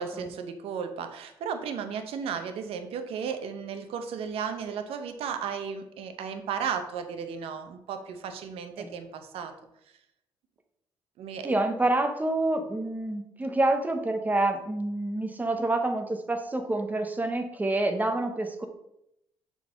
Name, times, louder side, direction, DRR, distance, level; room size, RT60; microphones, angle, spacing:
voice 1, 0.0-9.5 11.2-11.6, right 7 dB, 80° right, 8 dB, 0.7 m, -34 dB
voice 2, 11.4-18.7, right 2 dB, 15° right, 5 dB, 0.9 m, -27 dB
6.6 x 3.9 x 3.8 m, 0.80 s
cardioid pair, 90°, 10 cm